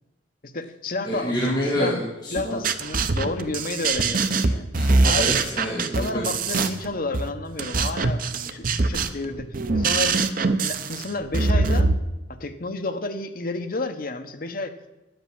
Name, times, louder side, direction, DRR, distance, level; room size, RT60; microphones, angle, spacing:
voice 1, 0.4-1.4 1.7-2.0 2.3-4.7 5.0-11.9 12.3-14.8, left 2 dB, 50° left, 7 dB, 1.1 m, -31 dB
voice 2, 1.0-2.6 4.7-6.7 7.7-7.8, equal, 25° left, -5 dB, 2.3 m, -28 dB
sound 1, 2.4-11.9, right 3 dB, 50° right, 0.8 m, -23 dB
11.0 x 8.0 x 8.8 m, 1.0 s
head